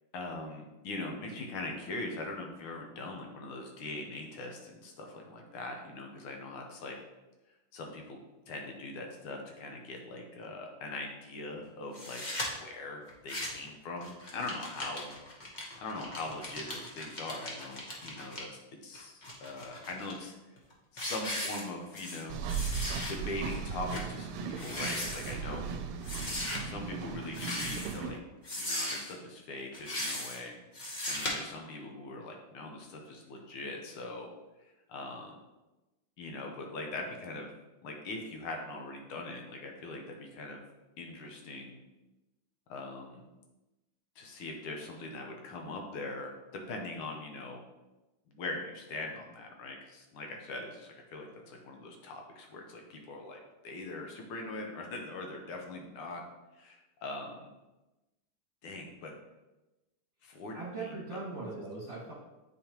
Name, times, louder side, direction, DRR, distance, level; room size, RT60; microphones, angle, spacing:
voice 1, 0.1-7.0 7.7-8.2 8.5-12.2 12.6-15.1 15.8-18.5 18.8-20.4 20.9-22.4 23.1-25.7 26.6-28.2 28.5-34.3 34.6-35.4 36.2-37.5 37.8-40.6 41.0-41.8 42.7-43.2 44.2-46.3 46.7-47.6 48.3-56.2 56.6-57.5 58.6-59.1 60.2-60.9, left 2 dB, 75° left, 2 dB, 1.6 m, -41 dB
sound 1, 11.9-12.5 13.1-13.7 14.0-18.4 18.9-20.1 20.6-20.7 21.0-22.2 22.5-23.1 23.5-23.6 23.9-24.1 24.5-25.3 26.0-26.6 27.3-28.0 28.4-29.1 29.7-30.4 30.7-31.3, left 1 dB, 50° left, 0.5 m, -38 dB
sound 2, 22.3-28.2, right 6 dB, 85° right, 1.5 m, -37 dB
voice 2, 60.5-62.1, right 3 dB, 35° right, -7 dB, 1.8 m, -40 dB
8.4 x 4.1 x 2.9 m, 1.1 s
omnidirectional pair, 2.4 m